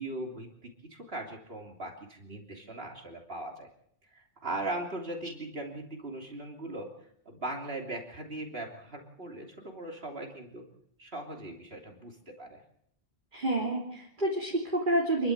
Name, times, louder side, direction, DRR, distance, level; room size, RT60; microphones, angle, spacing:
voice 1, 0.0-3.7 4.1-6.9 7.2-10.6 11.0-12.6, right 2 dB, 65° right, 2 dB, 3.5 m, -39 dB
voice 2, 13.3-15.3, right 1 dB, 50° right, -2 dB, 3.5 m, -29 dB
27.5 x 12.0 x 8.1 m, 0.69 s
omnidirectional pair, 1.1 m